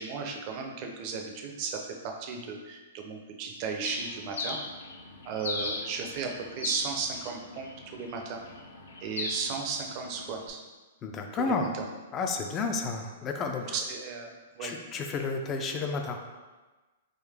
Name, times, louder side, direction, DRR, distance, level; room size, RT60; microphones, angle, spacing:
voice 1, 0.0-4.6 5.2-8.4 9.0-10.6 11.3-11.7 13.7-14.7, right 5 dB, 40° right, 3 dB, 0.5 m, -35 dB
Bird, 3.8-10.5, left 3 dB, 80° left, 0.6 m, -39 dB
voice 2, 11.0-11.7 12.1-13.8 14.6-16.2, left 4 dB, 25° left, 4 dB, 0.4 m, -31 dB
3.7 x 2.6 x 3.4 m, 1.2 s
hypercardioid pair, 145°, 0 cm